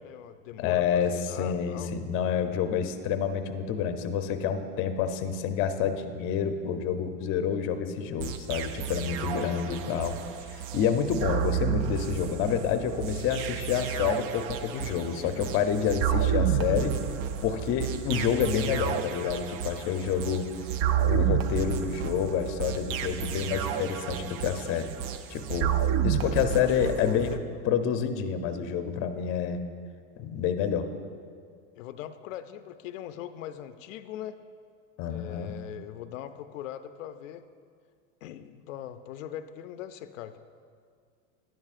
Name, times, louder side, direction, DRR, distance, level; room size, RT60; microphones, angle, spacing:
voice 1, 0.0-1.9 16.4-17.0 26.3-27.4 31.8-34.4 35.1-37.4 38.2-40.4, left 11 dB, 85° left, 10 dB, 0.5 m, -41 dB
voice 2, 0.6-10.2 10.5-16.9 17.4-20.5 21.0-24.9 25.3-25.7 26.0-27.4 27.6-29.6 30.2-30.9 35.0-35.6, left 7 dB, 35° left, 8 dB, 0.6 m, -28 dB
sound 1, 8.2-27.4, right 9 dB, 50° right, 0.5 m, -31 dB
11.0 x 10.5 x 2.5 m, 2.1 s
supercardioid pair, 140°, 38 cm